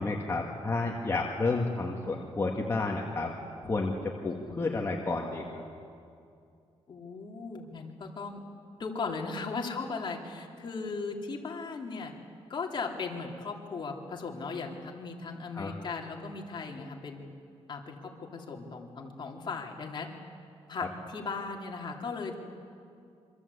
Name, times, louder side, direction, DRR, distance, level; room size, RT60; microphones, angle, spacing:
voice 1, 0.0-3.3 3.6-5.4 15.5-15.7, left 3 dB, 25° left, -1 dB, 2.1 m, -31 dB
voice 2, 4.3-4.9 6.9-8.4 8.8-12.1 12.5-17.3 17.7-20.1 20.7-22.3, left 4 dB, 45° left, 1 dB, 3.3 m, -37 dB
27.0 x 25.0 x 8.4 m, 2.4 s
wide cardioid pair, 145°, 11 cm